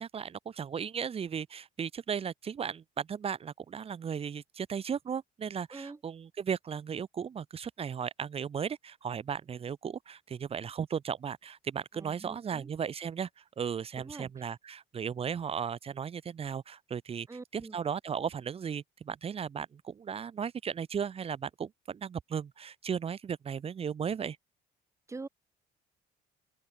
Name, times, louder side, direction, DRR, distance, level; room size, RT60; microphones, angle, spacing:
voice 1, 0.0-17.3 17.5-24.4, right 7 dB, 35° right, 1.0 m, -36 dB
voice 2, 11.9-12.7 14.0-14.5 17.3-17.7 25.1-25.3, right 3 dB, 15° right, 1.3 m, -45 dB
open air
cardioid pair, 110°, 17 cm